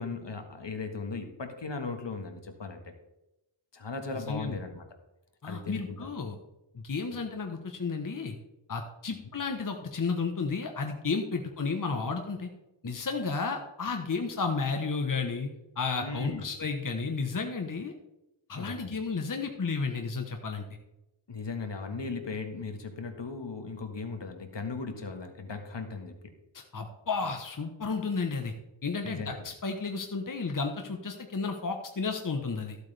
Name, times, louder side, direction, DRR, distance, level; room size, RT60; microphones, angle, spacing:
voice 1, 0.0-2.8 3.7-4.8 5.4-6.1 16.0-16.5 18.6-19.0 21.3-26.2 29.0-29.4, left 4 dB, 65° left, 6 dB, 1.6 m, -37 dB
voice 2, 4.1-4.6 5.4-6.4 6.7-8.4 8.7-12.5 12.8-15.5 15.8-17.9 18.5-20.6 26.5-28.5 28.8-32.8, left 4 dB, 40° left, 4 dB, 1.1 m, -32 dB
14.5 x 8.1 x 3.4 m, 0.94 s
wide cardioid pair, 70°, 47 cm